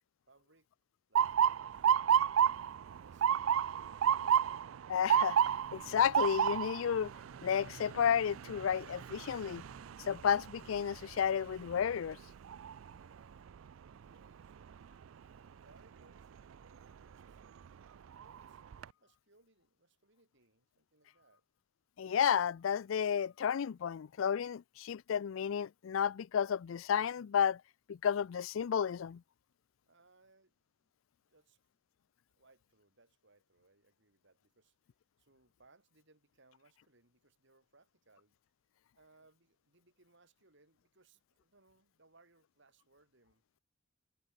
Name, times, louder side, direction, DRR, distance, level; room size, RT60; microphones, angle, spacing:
voice 1, 0.3-0.7 1.1-1.9 2.3-2.4 3.0-4.6 12.9-15.0 15.3-21.4 29.8-30.9 31.2-31.6 32.3-34.8 35.2-38.4 38.9-43.4, right 3 dB, 65° right, 6.8 m, -68 dB
Motor vehicle (road) / Siren, 1.1-13.0 13.5-13.9 14.7-15.0 16.9-17.1 17.6-17.7 18.2-18.8, right 9 dB, 85° right, 0.4 m, -32 dB
voice 2, 4.9-5.4 5.7-7.1 7.4-9.6 10.1-12.2 22.0-27.6 27.9-29.2, left 8 dB, 75° left, 0.4 m, -32 dB
sound 1, 5.4-10.7, equal, 10° right, 4.1 m, -62 dB
head